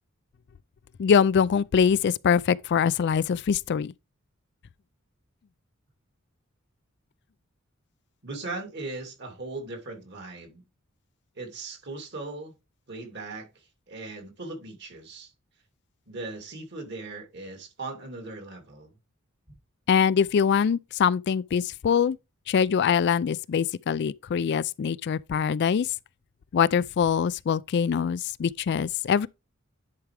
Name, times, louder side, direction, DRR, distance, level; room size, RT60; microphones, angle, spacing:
voice 1, 1.0-3.9 19.9-22.2 22.5-25.9 26.5-29.3, left 7 dB, 55° left, 0.3 m, -23 dB
voice 2, 8.2-10.6 11.4-12.5 12.9-13.5 13.9-15.3 16.1-18.9, right 3 dB, 55° right, 2.8 m, -38 dB
10.5 x 4.8 x 3.3 m
head